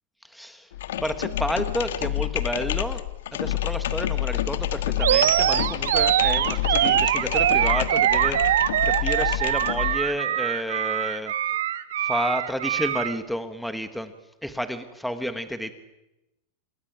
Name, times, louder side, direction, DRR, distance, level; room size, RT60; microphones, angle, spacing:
voice 1, 0.2-0.7 1.0-3.0 3.3-11.3 12.0-14.1 14.4-15.7, equal, ahead, 9 dB, 1.3 m, -31 dB
sound 1, 0.7-10.0, left 13 dB, 85° left, 1.4 m, -28 dB
Animal, 5.0-13.2, right 12 dB, 90° right, 1.3 m, -23 dB
27.0 x 20.5 x 9.3 m, 0.92 s
supercardioid pair, 175°, 0 cm